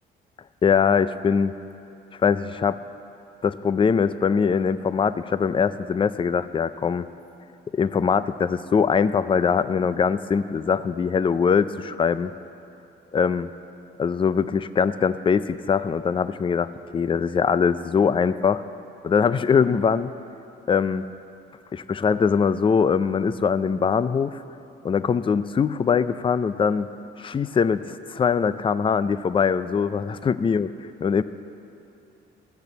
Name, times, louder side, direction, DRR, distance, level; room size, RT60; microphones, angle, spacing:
voice 1, 0.6-1.5 2.2-2.8 3.4-7.1 7.7-12.3 13.1-13.5 14.0-18.6 19.0-20.1 20.7-21.0 21.7-24.4 24.8-26.9 27.2-30.7 31.0-31.2, left 6 dB, 25° left, 14 dB, 0.4 m, -22 dB
13.5 x 6.7 x 9.1 m, 2.8 s
cardioid pair, 90°, 20 cm